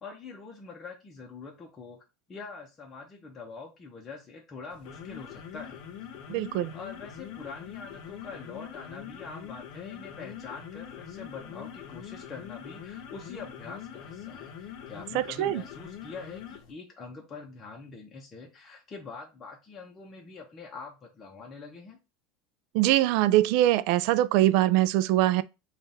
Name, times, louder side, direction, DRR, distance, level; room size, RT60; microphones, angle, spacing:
voice 1, 0.0-2.0 2.3-5.8 6.7-22.0, left 4 dB, 20° left, 0.7 m, -44 dB
sound 1, 4.7-16.7, left 8 dB, 60° left, 0.7 m, -43 dB
voice 2, 6.3-6.7 15.1-15.6 22.7-25.4, right 14 dB, 60° right, 0.3 m, -23 dB
3.7 x 2.4 x 4.0 m
supercardioid pair, 150°, 0 cm